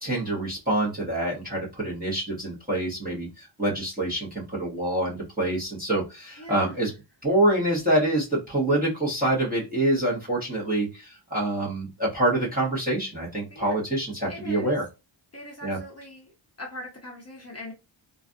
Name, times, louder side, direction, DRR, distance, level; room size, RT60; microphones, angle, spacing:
voice 1, 0.0-6.9 7.2-14.9 15.6-15.8, right 1 dB, 20° right, 0.9 m, -26 dB
voice 2, 6.4-6.7 13.5-13.7 14.3-14.7 15.3-16.3 16.6-17.7, left 1 dB, 30° left, 0.7 m, -41 dB
2.4 x 2.3 x 2.5 m
wide cardioid pair, 130°, 48 cm